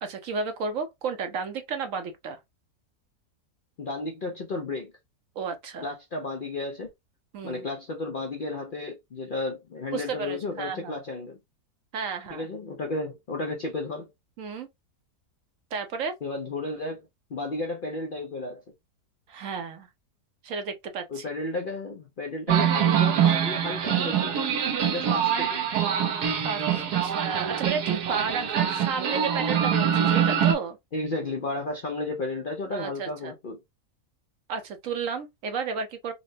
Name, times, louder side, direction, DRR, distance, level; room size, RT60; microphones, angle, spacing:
voice 1, 0.0-2.4 5.4-5.9 7.3-7.6 9.9-11.0 11.9-12.5 14.4-14.7 15.7-16.1 19.3-19.9 20.4-21.2 26.4-26.6 27.0-30.8 32.7-33.3 34.5-36.1, right 5 dB, 65° right, 1.0 m, -32 dB
voice 2, 3.8-4.9 5.8-6.9 7.4-11.4 12.3-14.1 16.2-18.6 21.1-24.4 24.9-25.7 30.9-33.6, left 2 dB, 60° left, 0.5 m, -33 dB
sound 1, 22.5-30.6, right 8 dB, 85° right, 1.3 m, -24 dB
4.1 x 2.1 x 2.6 m
omnidirectional pair, 1.7 m